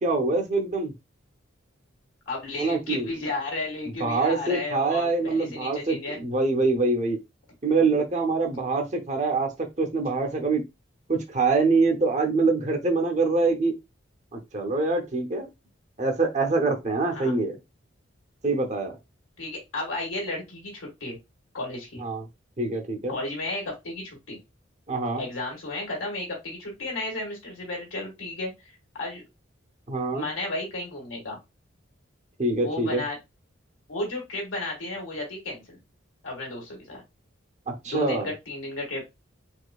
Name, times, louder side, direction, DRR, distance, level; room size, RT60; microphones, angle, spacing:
voice 1, 0.0-0.9 2.6-3.1 4.0-7.2 7.6-10.6 11.1-13.7 14.3-15.5 16.0-17.6 18.4-18.9 22.0-22.2 22.6-23.1 24.9-25.2 29.9-30.3 32.4-33.0 37.7-38.3, right 3 dB, 35° right, 4 dB, 0.7 m, -25 dB
voice 2, 2.3-6.2 17.1-17.3 19.4-21.2 21.5-22.0 23.1-24.4 25.2-29.2 30.1-31.4 32.6-33.2 33.9-35.8 36.2-37.0 37.8-39.1, left 2 dB, 80° left, -1 dB, 1.8 m, -33 dB
4.3 x 2.7 x 2.3 m, 0.22 s
head